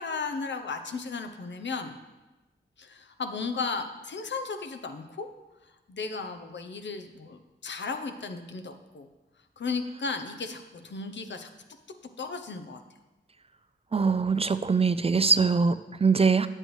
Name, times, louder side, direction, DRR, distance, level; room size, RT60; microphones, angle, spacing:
voice 1, 0.0-1.9 2.8-5.3 5.9-9.1 9.6-11.5 12.2-12.8, left 4 dB, 65° left, 6 dB, 0.7 m, -35 dB
voice 2, 13.9-16.5, right 5 dB, 30° right, 13 dB, 0.3 m, -23 dB
7.7 x 7.6 x 3.2 m, 1.1 s
cardioid pair, 45°, 20 cm